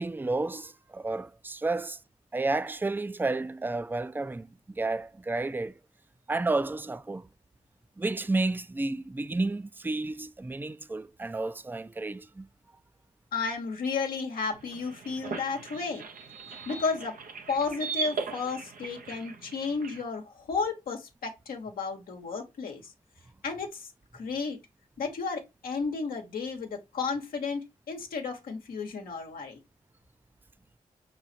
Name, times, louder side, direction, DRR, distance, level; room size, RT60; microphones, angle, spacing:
voice 1, 0.0-2.0 2.3-4.5 4.8-5.7 6.3-7.3 8.0-12.5, right 3 dB, 15° right, 0.4 m, -31 dB
voice 2, 13.3-16.1 16.7-17.2 17.5-22.9 23.4-23.9 24.1-24.6 25.0-29.6, left 4 dB, 85° left, 1.0 m, -33 dB
sound 1, 14.5-20.0, right 5 dB, 75° right, 0.7 m, -38 dB
4.9 x 3.7 x 2.6 m
supercardioid pair, 40°, 15 cm